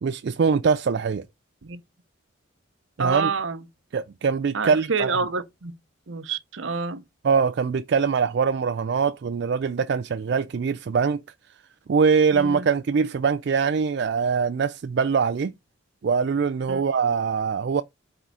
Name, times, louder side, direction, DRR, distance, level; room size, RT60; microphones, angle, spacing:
voice 1, 0.0-1.3 3.0-3.3 3.9-5.1 7.2-11.2 11.9-15.5 16.0-17.8, right 5 dB, 55° right, 0.3 m, -23 dB
voice 2, 3.0-3.6 4.5-5.7 6.1-7.0 12.3-12.7 16.7-16.8, right 4 dB, 70° right, 0.8 m, -28 dB
8.1 x 3.9 x 4.7 m
head